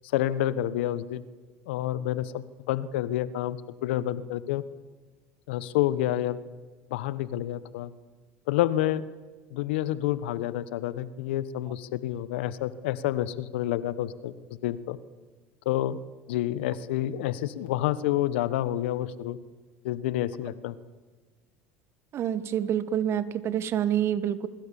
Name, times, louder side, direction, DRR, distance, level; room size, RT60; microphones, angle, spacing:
voice 1, 0.1-1.2 1.7-4.6 5.5-6.4 6.9-7.9 8.5-9.0 9.5-14.3 14.6-15.0 15.6-16.0 16.3-19.4 19.8-20.7, left 13 dB, 80° left, 16 dB, 1.2 m, -28 dB
voice 2, 22.1-24.5, right 10 dB, 45° right, 14 dB, 1.6 m, -27 dB
25.0 x 22.0 x 7.2 m, 1.4 s
hypercardioid pair, 85°, 6 cm